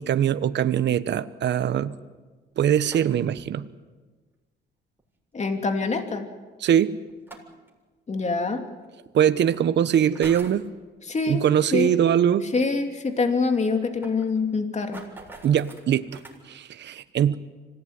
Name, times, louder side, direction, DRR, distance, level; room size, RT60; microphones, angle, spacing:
voice 1, 0.0-2.0 2.6-3.7 6.6-6.9 9.1-10.6 11.3-12.5 15.4-16.2 16.4-17.4, right 9 dB, 65° right, 12 dB, 1.0 m, -22 dB
sound 1, 2.5-3.4 5.0-5.1 7.1-7.7 8.8-8.9 10.0-10.7 11.7-11.9 12.2-12.3 12.6-12.7 12.9-13.0 13.6-16.4, right 2 dB, 10° right, 7.3 m, -45 dB
voice 2, 5.3-6.3 8.1-8.6 11.1-11.4 11.7-11.9 12.5-15.0, left 4 dB, 35° left, 5 dB, 2.8 m, -25 dB
26.0 x 17.5 x 9.7 m, 1.3 s
cardioid pair, 90°, 20 cm